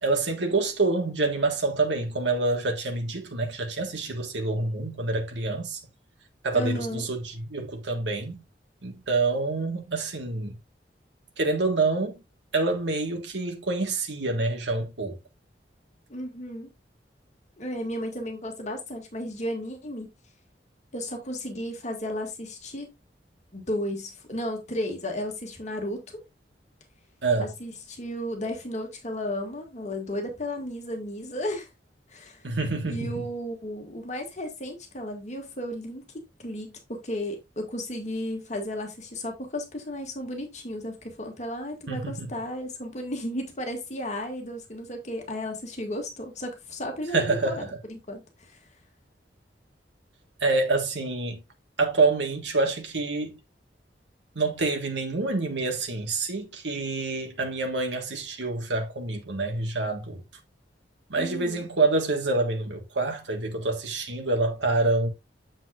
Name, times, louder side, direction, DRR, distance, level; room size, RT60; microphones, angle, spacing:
voice 1, 0.0-5.8 6.4-8.4 8.8-10.5 11.4-12.2 12.5-15.2 27.2-27.5 32.4-33.2 41.9-42.3 47.1-47.8 50.4-51.4 51.8-53.4 54.3-60.2 61.1-65.1, right 3 dB, 90° right, 1.6 m, -27 dB
voice 2, 6.5-7.0 16.1-16.7 17.6-20.1 20.9-22.9 23.5-26.2 27.4-31.7 32.1-32.5 32.8-48.6 61.2-61.7, left 1 dB, 40° left, 2.0 m, -34 dB
7.9 x 7.3 x 2.5 m
head